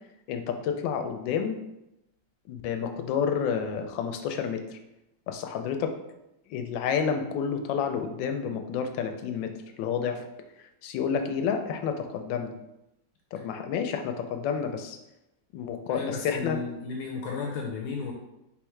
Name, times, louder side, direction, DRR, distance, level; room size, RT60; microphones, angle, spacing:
voice 1, 0.3-1.6 2.5-4.8 5.3-5.9 6.5-10.2 10.8-12.5 13.3-15.0 15.5-16.6, left 7 dB, 90° left, 6 dB, 1.3 m, -30 dB
voice 2, 15.9-18.1, left 5 dB, 70° left, 1 dB, 1.0 m, -34 dB
4.6 x 3.4 x 3.2 m, 0.89 s
omnidirectional pair, 2.0 m